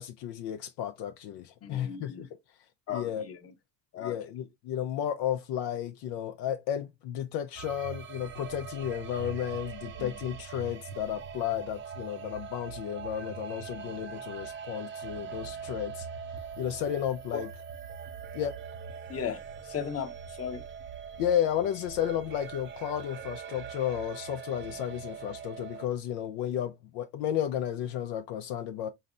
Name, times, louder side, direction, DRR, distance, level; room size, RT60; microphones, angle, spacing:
voice 1, 0.0-2.3 2.9-3.3 4.0-16.1 16.6-17.5 18.3-18.6 21.2-28.9, left 10 dB, 70° left, 0.6 m, -33 dB
voice 2, 1.6-2.3 2.9-3.5 3.9-4.1 9.9-10.1 17.3-17.5 19.1-20.6, left 8 dB, 35° left, 1.0 m, -36 dB
sound 1, 7.6-25.9, right 7 dB, 30° right, 0.6 m, -42 dB
4.1 x 3.2 x 2.5 m
supercardioid pair, 80°, 41 cm